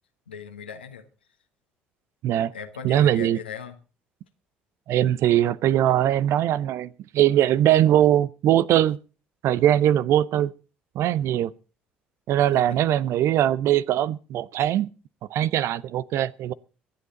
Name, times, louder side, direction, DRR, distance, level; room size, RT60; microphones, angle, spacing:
voice 1, 0.3-1.0 2.5-3.8 12.5-12.8, left 7 dB, 90° left, 1.4 m, -38 dB
voice 2, 2.8-3.4 4.9-9.0 9.4-10.5 10.9-11.5 12.3-14.9 15.3-16.5, right 12 dB, 60° right, 0.6 m, -21 dB
24.5 x 8.7 x 4.0 m
hypercardioid pair, 55°, 5 cm